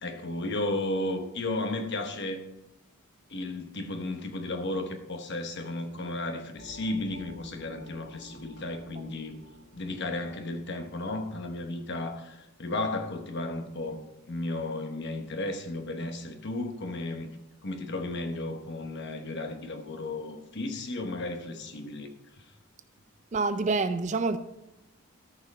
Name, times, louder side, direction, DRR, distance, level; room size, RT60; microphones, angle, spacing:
voice 1, 0.0-2.4 3.3-9.4 9.7-14.0 14.3-17.3 17.6-22.1, left 2 dB, 50° left, 1.1 m, -34 dB
sound 1, 6.6-11.9, right 1 dB, 70° right, 2.7 m, -52 dB
voice 2, 23.3-24.4, right 3 dB, 30° right, 0.4 m, -27 dB
13.5 x 5.8 x 4.2 m
head